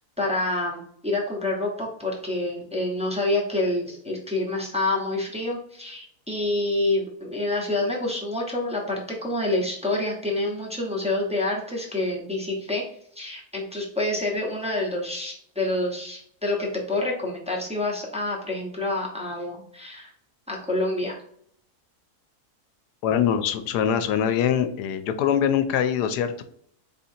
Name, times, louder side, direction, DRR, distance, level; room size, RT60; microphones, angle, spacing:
voice 1, 0.2-12.9 13.1-20.1 20.5-21.2, left 2 dB, 5° right, -3 dB, 0.7 m, -27 dB
voice 2, 23.0-26.4, left 8 dB, 85° left, 10 dB, 1.2 m, -23 dB
4.2 x 3.8 x 2.7 m, 0.66 s
omnidirectional pair, 1.7 m